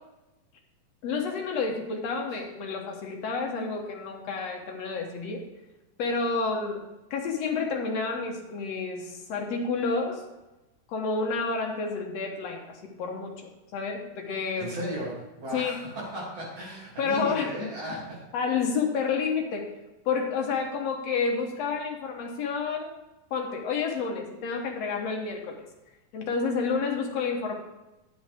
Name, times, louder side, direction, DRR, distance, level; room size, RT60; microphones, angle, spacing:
voice 1, 1.0-5.4 6.0-6.8 7.1-10.2 10.9-14.9 15.5-15.8 17.0-17.7 18.3-19.7 20.1-23.0 23.3-25.6 26.1-27.5, left 5 dB, 65° left, 1 dB, 1.8 m, -30 dB
voice 2, 14.6-18.2, right 1 dB, 45° right, -5 dB, 3.8 m, -36 dB
9.4 x 8.9 x 3.5 m, 1.0 s
omnidirectional pair, 4.1 m